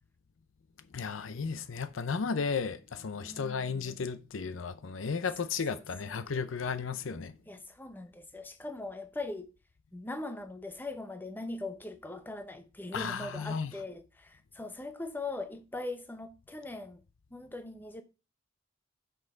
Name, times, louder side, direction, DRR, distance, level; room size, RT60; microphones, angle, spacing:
voice 1, 0.9-7.4 12.9-13.7, left 5 dB, 75° left, 0.6 m, -34 dB
voice 2, 3.2-3.8 6.1-6.2 7.5-9.5 9.9-17.0 17.3-18.0, left 2 dB, 10° left, 0.8 m, -41 dB
6.3 x 5.5 x 4.4 m
head